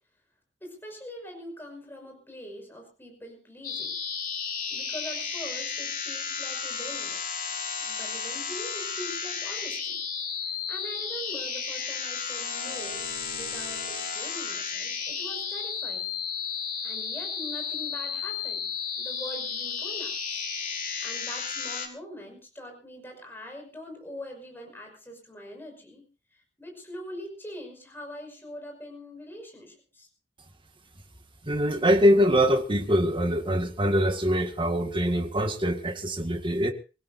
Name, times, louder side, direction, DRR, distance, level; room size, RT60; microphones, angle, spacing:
voice 1, 0.6-4.0 4.7-7.2 7.8-10.0 10.4-16.2 16.8-18.7 19.0-20.2 21.0-26.0 26.3-30.1, equal, 10° left, 2 dB, 5.7 m, -43 dB
sound 1, 3.6-21.9, left 6 dB, 50° left, 3.4 m, -33 dB
voice 2, 31.4-36.7, equal, 30° right, 6 dB, 1.8 m, -23 dB
25.0 x 16.0 x 2.7 m, 0.33 s
head